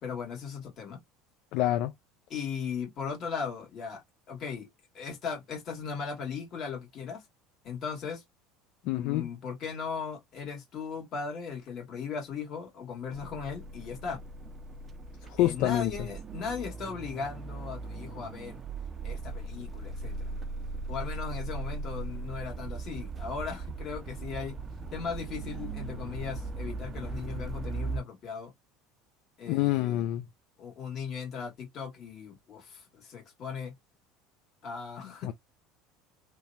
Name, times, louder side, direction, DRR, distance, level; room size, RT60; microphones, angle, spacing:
voice 1, 0.0-1.0 2.3-4.7 4.9-7.2 7.6-8.2 8.8-14.2 15.4-18.6 19.0-20.3 20.9-24.6 24.9-28.5 29.4-30.1 30.6-33.7 34.6-35.3, left 6 dB, 50° left, 1.6 m, -38 dB
voice 2, 1.5-1.9 8.9-9.3 15.4-15.9 29.5-30.2 35.2-35.3, left 14 dB, 70° left, 0.3 m, -26 dB
sound 1, 13.1-28.0, right 3 dB, 30° right, 0.4 m, -38 dB
3.0 x 2.1 x 2.7 m
supercardioid pair, 100°, 0 cm